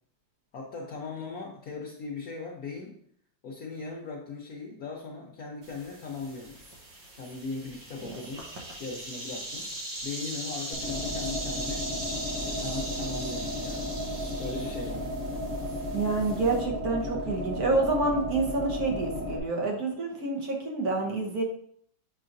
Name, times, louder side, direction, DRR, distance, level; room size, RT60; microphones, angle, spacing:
voice 1, 0.5-3.0 3.4-6.7 7.2-8.5 8.8-9.7 10.0-11.9 12.4-13.9 14.4-15.1, left 4 dB, 60° left, -2 dB, 1.1 m, -38 dB
sound 1, 5.6-16.6, right 1 dB, 80° right, 1.9 m, -40 dB
sound 2, 10.7-19.4, left 1 dB, 15° right, 0.8 m, -34 dB
voice 2, 15.9-21.4, right 3 dB, 55° right, 0 dB, 1.5 m, -28 dB
7.5 x 4.8 x 2.6 m, 0.64 s
omnidirectional pair, 2.0 m